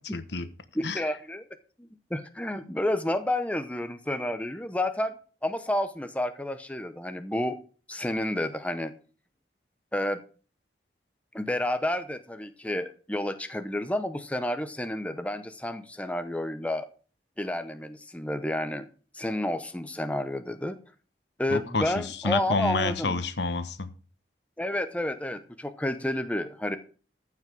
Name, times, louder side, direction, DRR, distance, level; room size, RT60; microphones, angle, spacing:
voice 1, 0.1-0.5 0.8-1.0 21.5-23.9, left 3 dB, 80° left, 1.2 m, -29 dB
voice 2, 0.7-1.4 1.8-5.2 5.4-7.6 7.9-8.9 9.9-10.2 11.3-16.9 17.4-18.8 19.1-20.8 21.4-23.2 24.6-26.8, left 1 dB, 10° left, 0.8 m, -30 dB
14.5 x 5.9 x 6.1 m
head